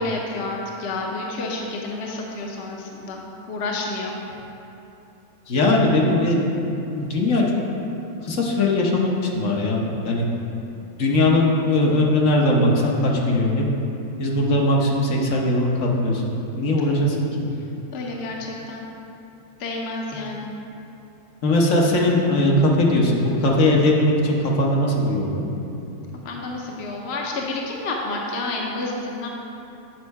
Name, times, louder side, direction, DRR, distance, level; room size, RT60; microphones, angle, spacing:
voice 1, 0.0-3.2 3.5-4.1 17.9-18.8 19.6-20.5 26.2-29.3, left 2 dB, 55° left, -1 dB, 0.9 m, -29 dB
voice 2, 5.5-6.4 6.9-7.4 8.2-10.2 11.0-13.7 14.2-16.2 16.5-17.3 21.4-25.4, left 1 dB, 70° left, -2 dB, 1.3 m, -20 dB
7.7 x 5.3 x 4.6 m, 2.9 s
omnidirectional pair, 1.4 m